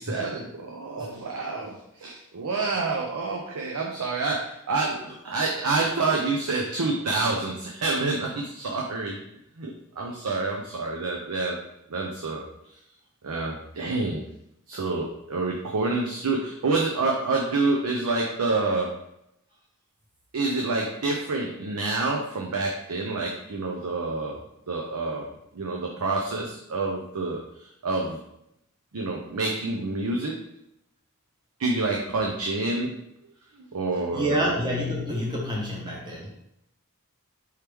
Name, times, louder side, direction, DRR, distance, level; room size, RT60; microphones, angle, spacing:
voice 1, 0.0-9.2 9.6-11.6 11.9-12.4 13.2-14.2 14.7-18.9 20.3-24.4 24.7-25.3 25.5-27.4 27.8-28.2 28.9-30.4 31.6-33.0 33.7-34.5, right 3 dB, 80° right, 0 dB, 0.6 m, -28 dB
voice 2, 33.9-36.4, equal, 20° right, -3 dB, 1.1 m, -28 dB
4.8 x 3.0 x 3.4 m, 0.80 s
head